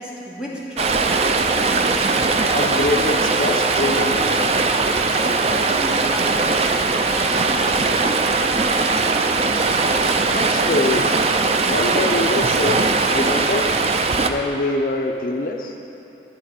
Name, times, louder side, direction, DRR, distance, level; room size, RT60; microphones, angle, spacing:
voice 1, 0.0-1.4 5.4-8.9, equal, 5° right, -6 dB, 1.7 m, -34 dB
Stream, 0.8-14.3, right 3 dB, 35° right, 0.4 m, -20 dB
voice 2, 1.6-4.6 10.3-11.2 11.6-13.8 14.2-15.7, left 2 dB, 50° left, 2 dB, 0.5 m, -25 dB
11.0 x 7.6 x 5.0 m, 2.9 s
head